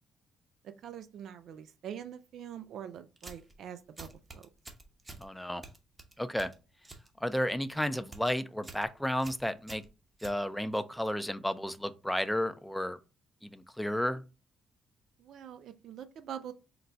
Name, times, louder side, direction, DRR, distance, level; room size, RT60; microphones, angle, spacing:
voice 1, 0.6-4.5 15.2-16.5, right 9 dB, 70° right, 10 dB, 0.3 m, -44 dB
sound 1, 3.2-3.6 4.0-5.3 5.6-7.1 7.4-7.7 8.0-8.3 8.6-8.9 9.2-10.8, right 2 dB, 20° right, 0.9 m, -49 dB
voice 2, 5.2-5.6 6.2-6.5 7.2-9.8 10.2-13.0 13.4-14.2, equal, 5° left, 11 dB, 0.4 m, -32 dB
3.9 x 2.2 x 4.3 m, 0.31 s
cardioid pair, 90°, 0 cm